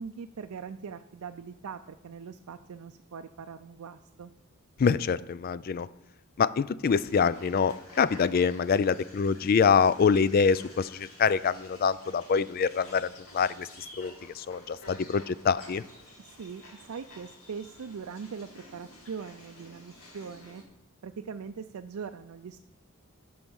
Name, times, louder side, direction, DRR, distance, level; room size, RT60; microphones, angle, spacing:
voice 1, 0.0-4.3 16.2-20.6 21.0-22.6, right 6 dB, 85° right, 7 dB, 0.4 m, -41 dB
voice 2, 4.8-5.9 6.4-15.8, left 6 dB, 45° left, 17 dB, 0.3 m, -25 dB
sound 1, 6.8-20.6, left 1 dB, 70° left, 2.7 m, -51 dB
11.5 x 4.8 x 7.1 m, 0.94 s
head